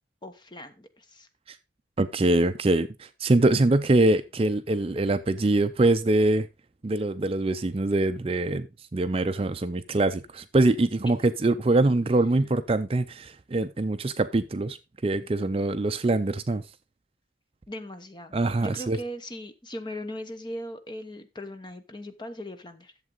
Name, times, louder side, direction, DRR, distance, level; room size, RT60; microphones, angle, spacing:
voice 1, 0.2-1.3 11.0-11.1 17.7-22.9, equal, 25° left, 0.9 m, -39 dB
voice 2, 2.0-6.5 6.8-8.7 8.9-14.8 15.0-16.6 18.3-19.0, right 2 dB, 30° right, 0.4 m, -24 dB
11.0 x 7.5 x 3.8 m
head